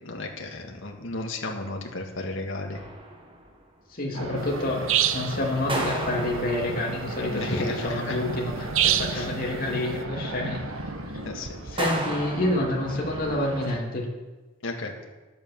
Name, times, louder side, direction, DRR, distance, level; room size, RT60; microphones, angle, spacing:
voice 1, 0.0-2.8 7.3-8.2 9.1-9.3 11.3-11.5 14.6-15.1, left 2 dB, 65° left, 1 dB, 1.9 m, -33 dB
sound 1, 2.7-3.6 5.7-7.2 11.8-13.3, right 2 dB, 25° right, 1.7 m, -34 dB
voice 2, 3.9-10.6 11.6-14.0, left 1 dB, 45° left, -2 dB, 2.8 m, -28 dB
sound 2, 4.1-13.8, right 2 dB, 90° right, 1.6 m, -35 dB
sound 3, 4.9-5.4 8.8-9.2, right 11 dB, 65° right, 0.7 m, -23 dB
11.0 x 8.7 x 7.4 m, 1.2 s
head